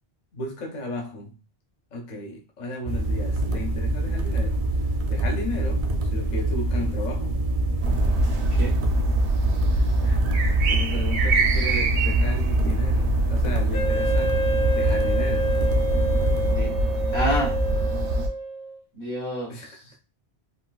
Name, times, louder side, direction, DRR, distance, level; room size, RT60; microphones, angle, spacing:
voice 1, 0.3-1.4 1.9-7.4 9.7-10.2 10.7-14.4 14.7-15.6 19.5-20.0, left 2 dB, 50° left, 0.6 m, -35 dB
sound 1, 2.9-16.6, right 2 dB, 55° right, 0.4 m, -25 dB
sound 2, 7.8-18.3, right 1 dB, 80° right, 1.0 m, -24 dB
Wind instrument woodwind instrument, 13.7-18.8, right 2 dB, 90° left, 1.6 m, -28 dB
voice 2, 17.1-17.5 18.9-19.5, equal, 65° left, 1.6 m, -28 dB
3.9 x 2.3 x 2.3 m
omnidirectional pair, 1.1 m